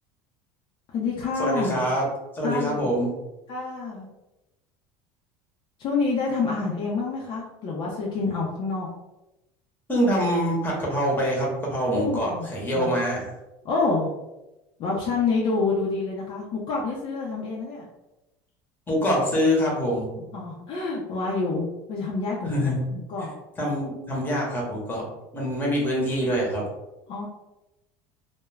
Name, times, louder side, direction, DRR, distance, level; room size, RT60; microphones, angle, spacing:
voice 1, 0.9-1.8 2.4-2.9 3.5-4.1 5.8-8.9 11.9-12.9 13.6-14.1 14.8-17.9 20.2-23.3 27.1-27.3, left 4 dB, 50° left, -3 dB, 0.5 m, -28 dB
voice 2, 1.4-2.0 2.3-3.1 9.9-13.2 18.9-20.1 22.5-22.8 23.6-25.0 25.3-26.6, equal, 20° left, -2 dB, 0.9 m, -24 dB
2.3 x 2.0 x 3.2 m, 0.97 s
supercardioid pair, 125°, 11 cm